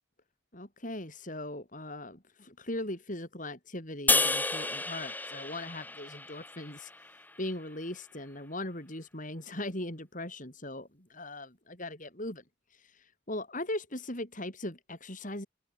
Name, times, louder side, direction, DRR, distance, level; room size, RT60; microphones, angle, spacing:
voice 1, 0.5-6.9 7.4-12.4 12.7-15.5, left 1 dB, 40° left, 5.4 m, -39 dB
sound 1, 4.1-7.4, left 3 dB, 10° left, 1.4 m, -31 dB
open air
head